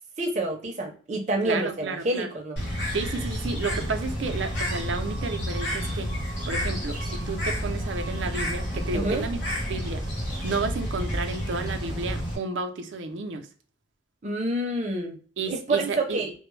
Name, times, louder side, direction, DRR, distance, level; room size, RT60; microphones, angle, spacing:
voice 1, 0.2-2.6 9.0-9.3 14.2-15.2 15.5-16.3, right 2 dB, 40° right, 0.5 m, -28 dB
voice 2, 1.4-2.3 2.9-6.1 6.5-9.4 9.7-10.1 10.4-13.5 15.4-16.2, right 3 dB, 90° right, 0.5 m, -31 dB
Bird, 2.6-12.4, equal, 85° left, 0.9 m, -30 dB
2.1 x 2.0 x 3.1 m
head